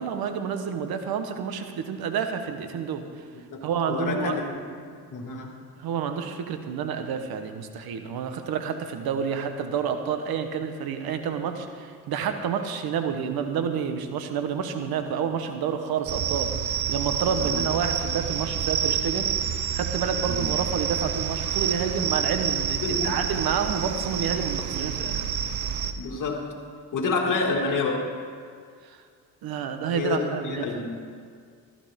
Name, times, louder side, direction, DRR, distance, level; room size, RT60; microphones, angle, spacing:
voice 1, 0.0-3.1 3.6-4.4 5.8-19.3 19.7-25.3 28.8-29.0 29.4-30.7, right 7 dB, 70° right, 7 dB, 1.2 m, -29 dB
voice 2, 3.5-4.9 5.1-5.5 17.4-17.6 20.3-20.5 22.8-23.3 26.0-26.4 26.9-28.1 29.9-30.9, left 4 dB, 55° left, 0 dB, 2.4 m, -28 dB
sound 1, 16.1-25.9, right 8 dB, 50° right, 0.9 m, -28 dB
15.0 x 13.5 x 3.7 m, 2.1 s
cardioid pair, 90°, 37 cm